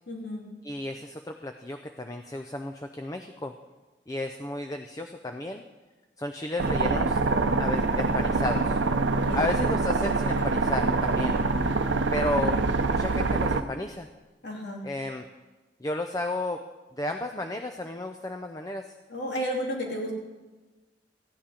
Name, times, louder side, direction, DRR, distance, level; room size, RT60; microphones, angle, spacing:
voice 1, 0.1-0.4 9.1-9.7 14.4-14.9 19.1-20.1, equal, 70° left, -1 dB, 2.8 m, -33 dB
voice 2, 0.6-3.5 4.1-5.6 6.2-7.2 7.6-8.8 9.3-11.4 12.1-12.6 12.9-14.1 14.8-15.3 15.8-16.6 16.9-18.9, left 2 dB, 20° left, 6 dB, 0.4 m, -33 dB
sound 1, 6.6-13.6, right 3 dB, 80° right, 0.7 m, -25 dB
14.5 x 9.9 x 5.1 m, 1.2 s
head